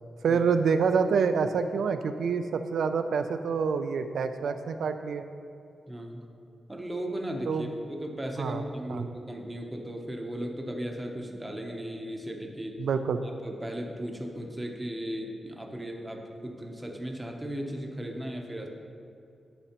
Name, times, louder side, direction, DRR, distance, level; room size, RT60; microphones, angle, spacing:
voice 1, 0.2-5.3 7.5-7.7 8.4-8.6 8.9-9.1 12.8-13.2, right 5 dB, 85° right, 8 dB, 0.3 m, -27 dB
voice 2, 5.9-6.2 6.7-12.8 13.4-18.7, equal, 10° right, 1 dB, 0.6 m, -36 dB
9.8 x 6.1 x 2.9 m, 2.6 s
wide cardioid pair, 180°, 0 cm